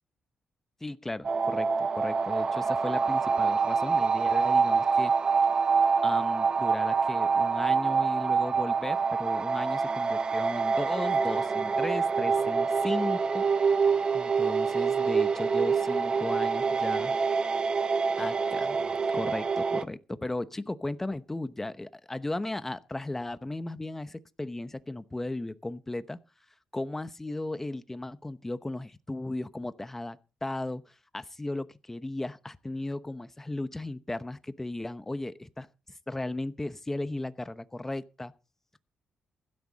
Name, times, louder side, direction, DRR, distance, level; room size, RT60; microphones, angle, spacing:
voice 1, 0.8-5.1 6.0-13.5 14.1-17.2 18.2-18.8 19.1-26.2 26.7-35.7 36.1-38.3, left 2 dB, 15° left, 0.9 m, -36 dB
sound 1, 1.2-19.8, right 5 dB, 40° right, 0.9 m, -26 dB
16.0 x 12.5 x 4.1 m
cardioid pair, 105°, 2 cm